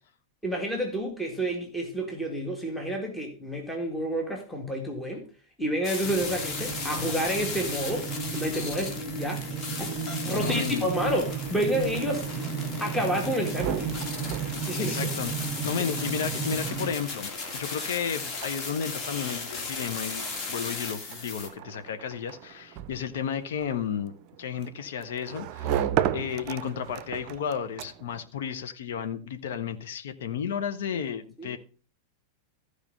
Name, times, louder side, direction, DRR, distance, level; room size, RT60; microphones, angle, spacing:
voice 1, 0.4-5.3 5.6-9.5 9.8-9.9 10.3-12.3 12.8-13.8 14.7-15.1 31.4-31.6, equal, 5° left, 2.0 m, -29 dB
sound 1, 5.8-21.5, left 4 dB, 30° left, 2.4 m, -36 dB
sound 2, 6.0-16.9, right 5 dB, 25° right, 1.0 m, -34 dB
voice 2, 10.3-10.9 14.8-25.8 26.1-31.6, left 8 dB, 60° left, 1.2 m, -33 dB
sound 3, 11.7-28.3, right 10 dB, 40° right, 0.6 m, -37 dB
15.0 x 5.1 x 5.3 m
figure-of-eight pair, 90°, 0 cm